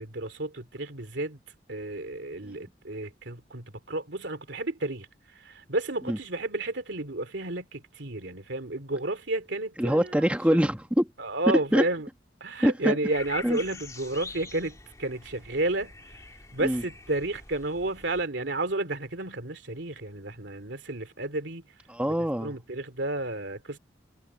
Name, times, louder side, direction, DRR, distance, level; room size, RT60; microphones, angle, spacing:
voice 1, 0.0-1.4 1.7-5.1 5.3-10.3 11.2-12.1 12.4-15.9 16.5-21.6 22.4-23.8, right 2 dB, 75° right, 2.7 m, -32 dB
voice 2, 9.8-11.1 11.5-11.8 12.6-13.0 13.4-13.6 16.6-16.8 21.9-22.5, equal, 5° right, 1.2 m, -24 dB
sound 1, 13.1-18.2, left 4 dB, 20° left, 2.0 m, -44 dB
head